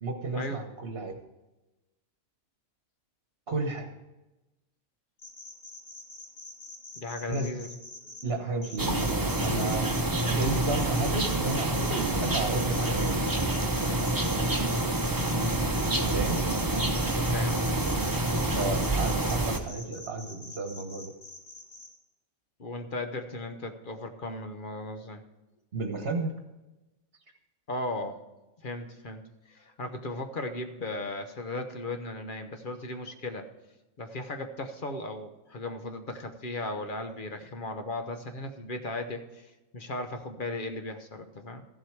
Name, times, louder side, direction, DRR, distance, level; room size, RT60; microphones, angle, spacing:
voice 1, 0.0-1.2 3.5-3.9 7.3-7.5 8.2-9.9 10.2-13.2 16.1-16.4 18.5-21.1 25.7-26.3, right 3 dB, 50° right, 4 dB, 1.4 m, -32 dB
sound 1, 5.2-8.2 8.6-21.9, left 2 dB, 85° left, 2.3 m, -45 dB
voice 2, 7.0-7.7 17.3-17.7 22.6-25.2 27.7-28.2 28.6-29.2 29.5-33.5 34.0-41.6, left 2 dB, 45° left, 6 dB, 1.1 m, -36 dB
sound 2, 8.8-19.6, right 1 dB, 20° right, 0.9 m, -27 dB
14.5 x 7.6 x 4.8 m, 1.0 s
omnidirectional pair, 1.4 m